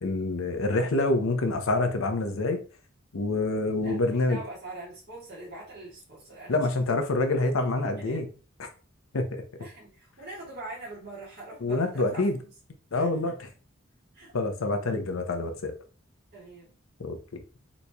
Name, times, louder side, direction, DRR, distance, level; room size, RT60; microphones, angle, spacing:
voice 1, 0.0-2.6 3.1-4.4 6.5-8.3 8.6-8.7 9.1-9.4 11.6-12.4 12.9-13.5 14.3-15.7 17.0-17.4, left 2 dB, 80° left, 0.6 m, -27 dB
voice 2, 3.8-6.7 8.0-8.2 9.6-12.2 12.9-13.3 14.1-14.3 16.3-16.8, right 2 dB, 50° right, 1.4 m, -43 dB
4.0 x 3.0 x 2.2 m
head